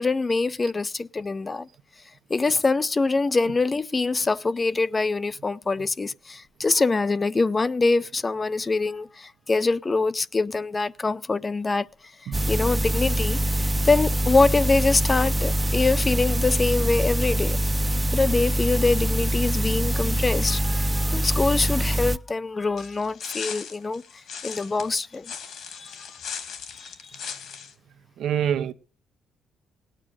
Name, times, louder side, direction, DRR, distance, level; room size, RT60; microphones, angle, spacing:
voice 1, 0.0-1.7 2.3-11.9 12.2-13.4 13.8-17.6 18.1-24.0 24.4-25.9 26.8-26.9 28.4-28.5, left 3 dB, 25° left, 0.6 m, -24 dB
sound 1, 12.3-22.2, right 1 dB, 20° right, 0.6 m, -24 dB
sound 2, 22.8-27.7, left 6 dB, 70° left, 2.6 m, -38 dB
voice 2, 28.2-28.7, right 9 dB, 75° right, 0.8 m, -25 dB
17.5 x 9.1 x 6.5 m
cardioid pair, 90°, 0 cm